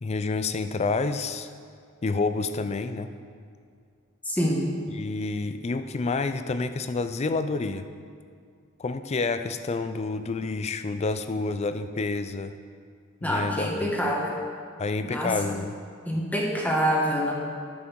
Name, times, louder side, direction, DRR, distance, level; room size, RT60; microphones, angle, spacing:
voice 1, 0.0-1.5 2.0-3.1 5.0-7.9 8.8-12.6 13.2-13.9 14.8-15.8, left 3 dB, 30° left, 10 dB, 0.4 m, -28 dB
voice 2, 4.2-4.7 13.2-14.4 15.0-15.4 16.0-17.3, equal, 10° left, -2 dB, 1.2 m, -26 dB
11.0 x 6.3 x 4.6 m, 2.2 s
head